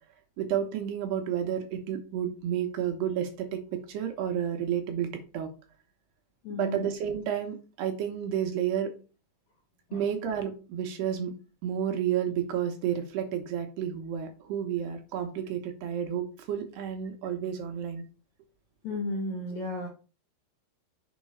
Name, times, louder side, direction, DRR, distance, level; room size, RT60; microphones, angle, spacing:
voice 1, 0.4-5.1 5.3-5.5 6.6-8.9 9.9-11.3 11.6-18.0, right 9 dB, 75° right, 4 dB, 2.9 m, -31 dB
voice 2, 6.4-6.9 9.9-10.0 18.8-19.9, left 1 dB, 65° left, -1 dB, 1.8 m, -33 dB
7.3 x 5.3 x 4.5 m, 0.34 s
omnidirectional pair, 5.3 m